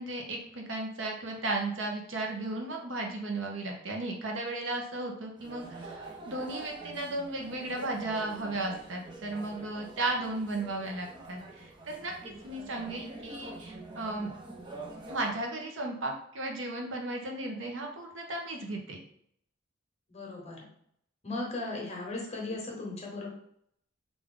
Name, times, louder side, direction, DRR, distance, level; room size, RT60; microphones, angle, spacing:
voice 1, 0.0-14.3 15.1-19.0, right 2 dB, 90° right, 1 dB, 0.8 m, -35 dB
sound 1, 5.4-15.3, right 2 dB, 25° right, 0.5 m, -46 dB
voice 2, 20.1-20.7 21.2-23.3, left 2 dB, 35° left, -2 dB, 0.9 m, -37 dB
3.5 x 2.5 x 3.6 m, 0.69 s
head